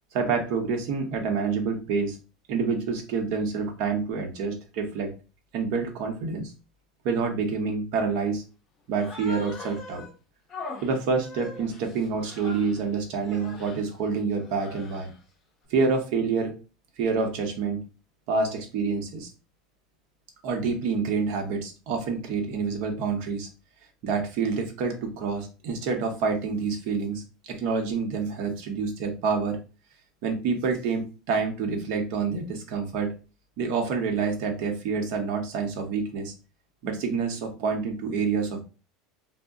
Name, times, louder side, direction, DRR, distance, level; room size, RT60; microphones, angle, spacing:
voice 1, 0.1-2.2 2.5-5.1 5.5-6.5 7.0-8.4 8.9-10.0 10.8-15.1 15.7-16.6 17.0-17.8 18.3-19.3 20.4-23.5 24.0-27.2 27.5-29.6 30.2-33.1 33.6-36.3 36.8-38.6, right 5 dB, 60° right, 3 dB, 0.8 m, -27 dB
Human voice, 8.9-10.1 10.5-12.8 13.2-13.8 14.4-15.2, left 3 dB, 25° left, 0.7 m, -41 dB
2.4 x 2.1 x 3.6 m, 0.33 s
supercardioid pair, 155°, 0 cm